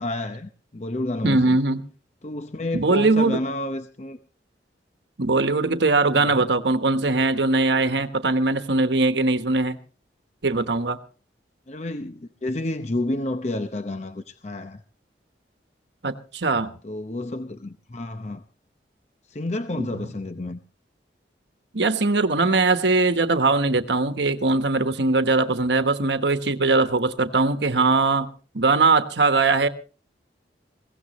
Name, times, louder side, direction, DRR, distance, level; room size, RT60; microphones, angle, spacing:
voice 1, 0.0-1.6 2.2-4.2 6.1-6.4 11.7-14.8 16.8-18.4 19.3-20.6, left 2 dB, 40° left, 0.7 m, -30 dB
voice 2, 1.2-1.8 2.7-3.4 5.2-9.8 10.4-11.0 16.0-16.7 19.8-19.9 21.7-28.3 28.5-29.7, right 3 dB, 75° right, 1.2 m, -21 dB
21.5 x 17.0 x 3.1 m
head